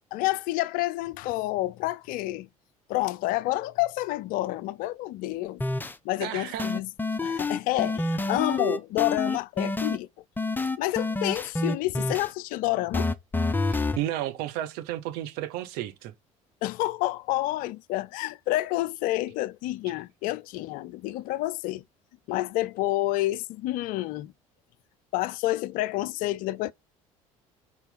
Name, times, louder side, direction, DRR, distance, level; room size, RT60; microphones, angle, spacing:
voice 1, 0.1-2.5 2.9-5.6 6.0-6.9 7.2-10.1 10.8-13.1 16.6-21.8 22.3-24.3 25.1-26.7, left 17 dB, 55° left, 0.4 m, -29 dB
sound 1, 5.6-5.9 6.6-10.0 10.4-12.3 12.9-14.0, left 2 dB, 10° left, 0.6 m, -28 dB
voice 2, 6.2-6.7 13.7-16.1, right 13 dB, 60° right, 1.1 m, -32 dB
4.3 x 4.2 x 5.5 m
figure-of-eight pair, 60°, 18 cm